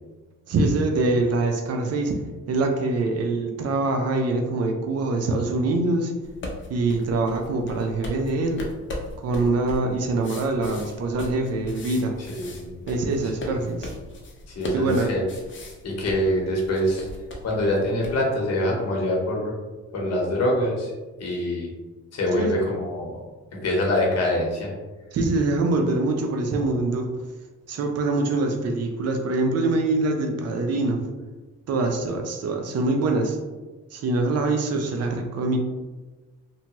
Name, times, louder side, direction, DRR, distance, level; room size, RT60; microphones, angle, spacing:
voice 1, 0.5-2.1 2.5-6.1 6.7-8.6 9.2-12.2 12.9-13.9 14.7-15.2 22.3-22.5 25.1-27.1 27.7-31.0 31.7-33.4 33.9-35.6, right 2 dB, 55° right, 4 dB, 0.5 m, -24 dB
sound 1, 6.2-18.2, left 1 dB, 40° left, 0.6 m, -38 dB
voice 2, 12.3-12.7 14.5-15.2 15.8-17.1 17.4-19.5 19.9-20.9 21.2-21.7 22.1-23.1 23.6-24.7, left 1 dB, 55° left, -2 dB, 1.0 m, -24 dB
2.8 x 2.2 x 2.9 m, 1.2 s
cardioid pair, 90°, 30 cm